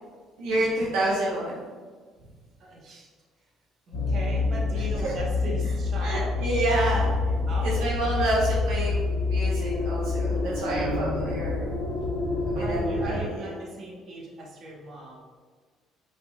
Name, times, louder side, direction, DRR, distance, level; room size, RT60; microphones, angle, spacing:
voice 1, 0.4-1.7 5.0-5.1 6.0-7.3 7.6-11.7 12.4-13.5, right 1 dB, 80° right, -5 dB, 0.9 m, -29 dB
voice 2, 2.6-3.1 3.9-6.4 7.5-8.4 10.2-11.0 12.5-15.2, right 1 dB, 55° right, -2 dB, 1.1 m, -39 dB
sound 1, 3.9-13.2, left 3 dB, 90° left, 0.7 m, -27 dB
5.2 x 3.6 x 2.3 m, 1.5 s
hypercardioid pair, 60°, 0 cm